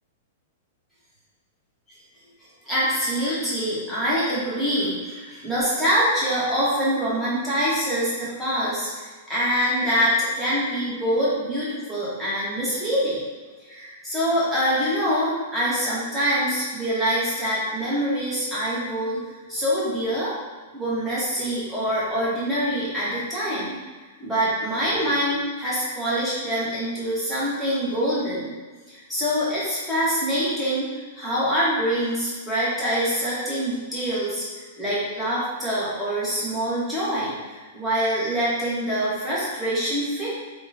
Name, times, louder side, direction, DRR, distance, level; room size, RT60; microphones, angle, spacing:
voice 1, 2.6-13.2 13.6-19.2 19.5-20.3 20.7-23.8 24.2-28.5 28.9-30.9 31.2-34.4 34.8-40.3, equal, ahead, -11 dB, 1.2 m, -25 dB
3.7 x 2.4 x 2.7 m, 1.4 s
hypercardioid pair, 140°, 0 cm